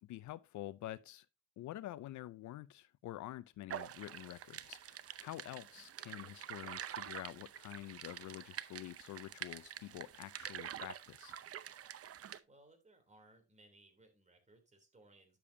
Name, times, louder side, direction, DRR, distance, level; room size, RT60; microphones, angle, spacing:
voice 1, 0.0-1.3 1.6-11.3, left 14 dB, 70° left, 0.5 m, -48 dB
sound 1, 3.7-12.4, right 10 dB, 50° right, 0.7 m, -47 dB
voice 2, 5.4-5.8 12.4-15.4, right 2 dB, 25° right, 3.1 m, -64 dB
10.0 x 6.9 x 2.7 m
cardioid pair, 90°, 30 cm